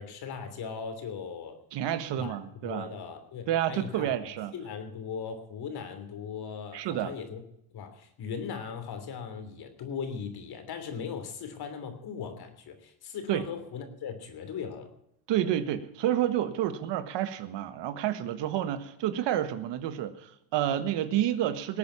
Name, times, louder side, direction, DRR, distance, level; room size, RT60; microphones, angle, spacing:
voice 1, 0.0-1.6 2.1-2.4 2.6-7.4 7.7-14.9, left 6 dB, 50° left, 8 dB, 3.1 m, -39 dB
voice 2, 1.7-2.9 3.5-4.5 6.7-7.1 13.3-13.4 15.3-21.8, right 11 dB, 60° right, 12 dB, 1.4 m, -29 dB
19.5 x 8.6 x 5.7 m, 0.78 s
cardioid pair, 110°, 48 cm